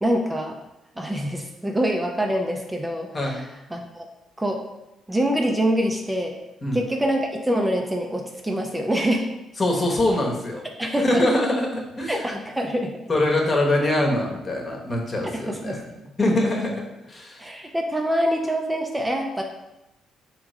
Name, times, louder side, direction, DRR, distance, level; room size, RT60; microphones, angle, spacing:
voice 1, 0.0-0.6 1.0-3.4 3.7-4.1 4.4-4.6 5.1-6.4 6.7-9.3 10.8-11.2 12.1-13.0 15.5-15.8 17.4-19.4, equal, 10° right, 2 dB, 0.5 m, -25 dB
voice 2, 9.6-10.6 11.0-12.2 13.1-15.8 16.2-17.5, left 1 dB, 35° left, -1 dB, 1.1 m, -23 dB
3.5 x 3.1 x 4.8 m, 0.94 s
cardioid pair, 90°, 0 cm